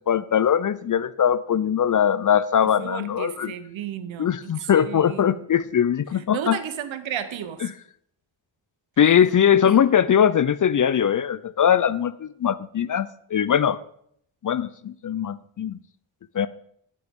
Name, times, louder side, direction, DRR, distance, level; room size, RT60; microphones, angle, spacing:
voice 1, 0.1-3.5 4.2-6.6 7.6-7.7 9.0-13.8 14.4-15.8 16.3-16.5, left 8 dB, 45° left, 15 dB, 0.4 m, -21 dB
voice 2, 2.6-5.4 6.1-7.7 9.6-9.9, right 9 dB, 85° right, 11 dB, 0.8 m, -34 dB
8.6 x 7.8 x 3.6 m, 0.67 s
cardioid pair, 50°, 46 cm